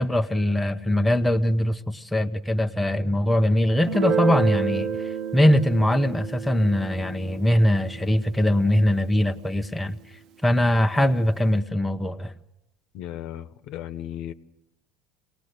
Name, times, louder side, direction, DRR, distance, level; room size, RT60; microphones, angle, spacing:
voice 1, 0.0-10.0 10.4-12.3, left 1 dB, 5° left, 0.9 m, -22 dB
Guitar, 3.9-9.4, right 7 dB, 55° right, 0.7 m, -30 dB
voice 2, 12.9-14.3, left 11 dB, 60° left, 1.1 m, -35 dB
26.0 x 18.5 x 6.7 m
supercardioid pair, 115°, 0 cm